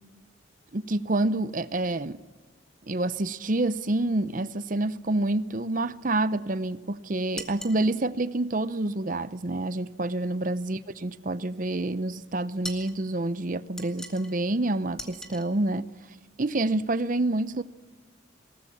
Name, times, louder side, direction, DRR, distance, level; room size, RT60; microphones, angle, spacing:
voice 1, 0.7-2.2 2.9-15.9 16.4-17.6, right 2 dB, 40° right, 0.7 m, -28 dB
sound 1, 7.4-7.8 12.6-13.0 13.8-14.3 15.0-15.5, equal, 5° left, 1.7 m, -39 dB
21.0 x 19.0 x 7.2 m
head